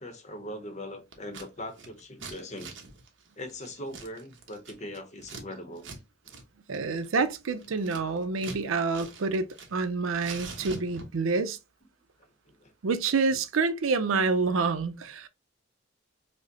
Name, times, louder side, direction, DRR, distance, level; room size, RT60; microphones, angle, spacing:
voice 1, 0.0-2.7 3.4-5.9 10.2-10.3 12.5-12.7, left 1 dB, 35° left, 0.8 m, -40 dB
Scissors, 1.1-1.5 1.7-5.4 5.8-6.0 6.3-6.4 6.7-8.6 8.9-9.9 10.1-11.3, right 4 dB, 65° right, 0.9 m, -44 dB
voice 2, 6.7-11.6 12.8-15.3, right 4 dB, 85° right, 0.5 m, -27 dB
5.1 x 2.1 x 2.7 m
head